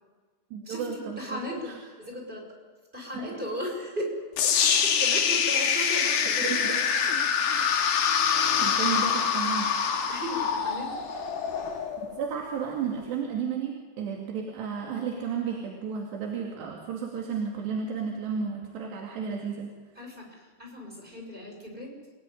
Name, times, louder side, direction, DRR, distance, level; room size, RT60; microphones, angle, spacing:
voice 1, 0.5-1.8 3.1-3.4 6.4-6.8 8.6-9.7 12.1-19.7, right 6 dB, 85° right, 0 dB, 4.6 m, -33 dB
voice 2, 1.2-1.7 2.0-2.4 2.9-4.1 4.5-7.1 10.1-10.9 19.9-21.9, left 1 dB, 10° right, 1 dB, 6.1 m, -36 dB
sound 1, 4.4-12.4, left 7 dB, 85° left, 4.2 m, -25 dB
28.0 x 17.5 x 10.0 m, 1.4 s
omnidirectional pair, 4.7 m